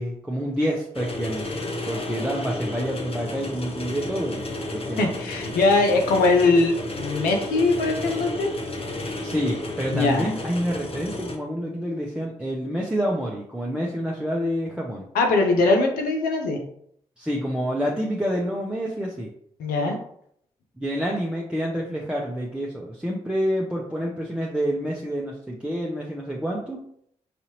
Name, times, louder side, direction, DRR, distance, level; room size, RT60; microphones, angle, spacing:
voice 1, 0.0-1.5 1.9-4.4 4.7-5.1 9.2-15.1 17.2-19.3 20.8-26.8, equal, 5° right, -3 dB, 0.8 m, -28 dB
sound 1, 0.9-11.4, left 2 dB, 40° left, 0.8 m, -32 dB
voice 2, 5.0-8.5 9.9-10.3 15.1-16.6 19.6-20.0, left 3 dB, 85° left, 3 dB, 0.7 m, -21 dB
5.0 x 2.7 x 3.0 m, 0.69 s
hypercardioid pair, 40°, 15 cm